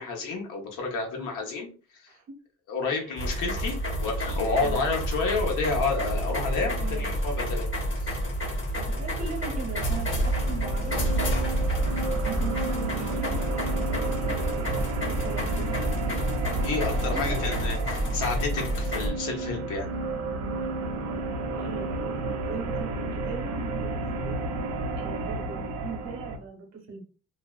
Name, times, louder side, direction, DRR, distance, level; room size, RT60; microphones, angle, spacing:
voice 1, 0.0-2.1 2.7-7.7 8.0-8.2 16.6-19.9, left 4 dB, 85° left, 1 dB, 0.9 m, -30 dB
sound 1, 3.2-19.1, equal, 40° left, 1.0 m, -29 dB
voice 2, 4.3-4.9 6.8-7.1 8.7-11.7 12.2-14.5 15.1-16.1 17.1-17.4 17.7-17.8 20.6-20.7 21.5-22.1 22.4-24.5 24.9-27.0, right 4 dB, 60° right, 2 dB, 1.0 m, -40 dB
sound 2, 9.4-26.4, right 2 dB, 80° right, 0.6 m, -32 dB
2.5 x 2.1 x 2.3 m, 0.37 s
cardioid pair, 90°, 30 cm